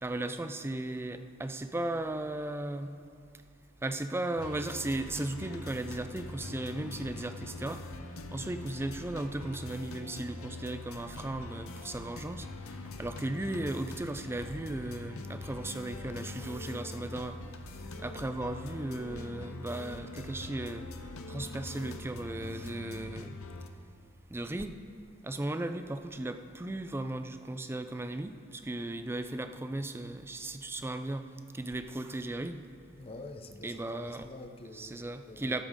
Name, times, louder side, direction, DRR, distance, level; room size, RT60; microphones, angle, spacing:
voice 1, 0.0-2.9 3.8-7.8 8.3-17.4 18.0-20.9 21.3-23.4 24.3-24.8 25.2-31.3 31.5-32.6 33.6-34.3 34.7-35.6, right 2 dB, 10° right, 9 dB, 0.4 m, -36 dB
sound 1, 4.4-23.7, left 2 dB, 85° left, 0.8 m, -43 dB
voice 2, 33.0-35.6, left 2 dB, 30° left, 7 dB, 0.6 m, -47 dB
13.0 x 11.5 x 3.7 m, 2.3 s
head